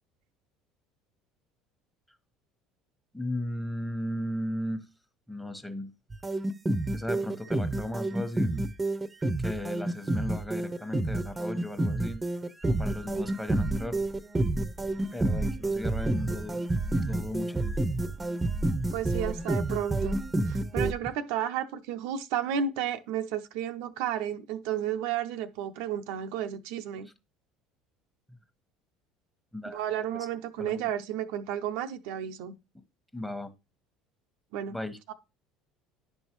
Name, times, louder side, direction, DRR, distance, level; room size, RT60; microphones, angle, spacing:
voice 1, 3.1-4.9 5.3-5.9 6.9-8.6 9.4-12.2 12.7-14.0 15.1-16.6 17.0-17.8 28.3-28.4 29.5-29.8 30.1-30.3 30.6-30.9 32.7-32.8 33.1-33.5 34.7-35.0, left 1 dB, 5° left, 1.2 m, -36 dB
sound 1, 6.1-20.9, right 2 dB, 15° right, 0.8 m, -29 dB
voice 2, 18.9-20.2 20.5-27.1 29.7-32.5 34.5-34.8 35.1-35.2, right 9 dB, 65° right, 0.6 m, -32 dB
10.5 x 5.5 x 3.0 m
hypercardioid pair, 65°, 0 cm